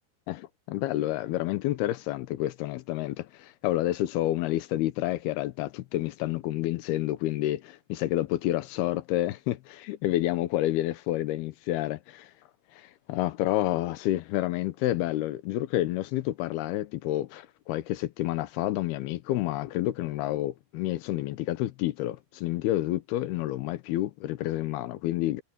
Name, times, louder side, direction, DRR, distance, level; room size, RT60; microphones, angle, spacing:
voice 1, 0.3-12.3 12.8-25.4, left 15 dB, 85° left, 2.9 m, -29 dB
omnidirectional pair, 4.4 m